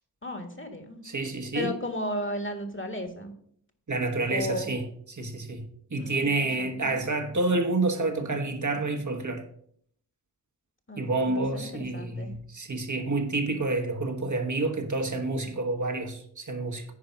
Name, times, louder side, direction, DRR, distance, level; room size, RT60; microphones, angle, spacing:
voice 1, 0.2-1.0 1.5-3.3 4.3-4.7 6.0-6.3 6.6-6.9 10.9-12.3, left 1 dB, 30° left, 1.7 m, -34 dB
voice 2, 1.0-1.7 3.9-9.5 11.0-16.8, right 2 dB, 50° right, 1.4 m, -29 dB
9.8 x 4.8 x 5.7 m
wide cardioid pair, 60°, 39 cm